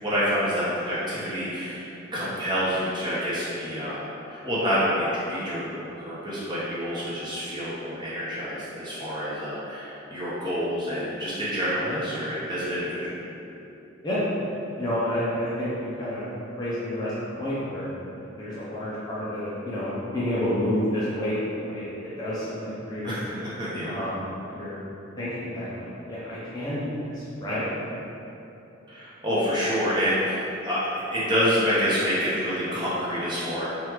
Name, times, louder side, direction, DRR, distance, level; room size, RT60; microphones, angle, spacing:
voice 1, 0.0-4.0 4.3-13.2 23.0-23.9 28.9-33.6, equal, 20° right, -10 dB, 0.8 m, -27 dB
voice 2, 14.8-16.3 16.6-18.0 18.4-23.2 23.8-24.8 25.2-27.6, left 1 dB, 20° left, -10 dB, 0.5 m, -30 dB
3.3 x 2.3 x 2.9 m, 2.9 s
head